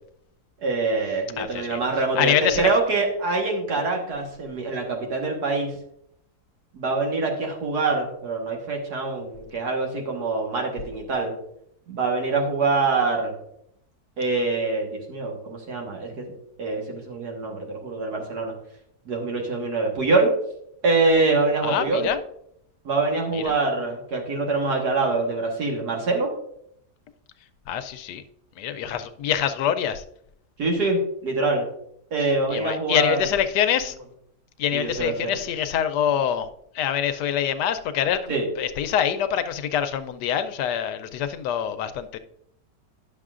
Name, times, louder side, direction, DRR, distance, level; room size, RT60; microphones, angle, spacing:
voice 1, 0.6-5.7 6.7-11.3 11.9-13.3 14.2-16.3 16.6-18.5 19.1-20.3 20.8-22.1 22.9-26.3 30.6-31.7 32.1-33.2 34.7-35.4 38.3-38.5, right 3 dB, 75° right, 0 dB, 1.9 m, -24 dB
voice 2, 1.4-1.8 2.2-2.7 21.6-22.2 23.3-23.5 27.7-28.2 28.6-30.0 32.2-33.9 34.6-36.5 36.7-42.2, left 9 dB, 85° left, 11 dB, 1.2 m, -25 dB
10.5 x 6.6 x 2.5 m, 0.73 s
omnidirectional pair, 1.8 m